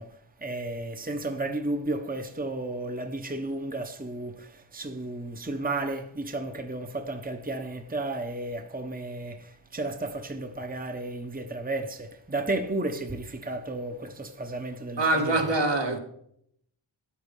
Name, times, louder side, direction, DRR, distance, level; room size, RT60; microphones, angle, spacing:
voice 1, 0.0-15.4, right 2 dB, 20° right, 1.1 m, -33 dB
voice 2, 15.0-16.0, right 2 dB, 60° right, 2.2 m, -24 dB
13.5 x 9.5 x 5.5 m
wide cardioid pair, 55°, 48 cm